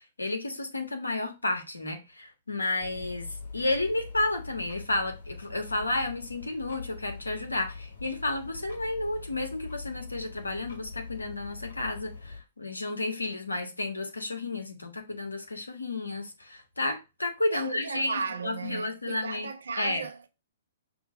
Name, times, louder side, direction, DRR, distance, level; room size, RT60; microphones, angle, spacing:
voice 1, 0.2-3.3 3.5-19.5 19.8-20.0, left 2 dB, 80° left, 1.4 m, -32 dB
sound 1, 2.8-12.4, left 4 dB, 60° left, 2.0 m, -43 dB
voice 2, 17.5-20.3, right 5 dB, 65° right, 0.8 m, -35 dB
6.1 x 3.1 x 5.1 m
figure-of-eight pair, 115°, 0 cm